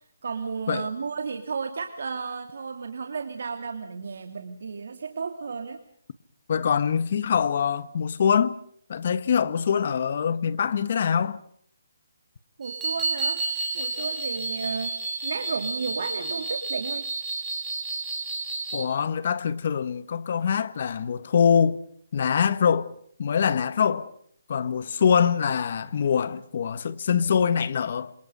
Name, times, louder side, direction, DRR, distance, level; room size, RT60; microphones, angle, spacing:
voice 1, 0.2-5.8 12.6-13.4 13.7-14.9 15.2-17.0, right 5 dB, 55° right, 2.7 m, -33 dB
voice 2, 6.5-8.5 8.9-11.4 18.7-21.8 22.1-24.1 24.5-28.1, left 7 dB, 40° left, 1.4 m, -24 dB
sound 1, 12.6-18.8, right 3 dB, 5° right, 7.4 m, -31 dB
28.5 x 27.0 x 5.2 m
hypercardioid pair, 175°, 0 cm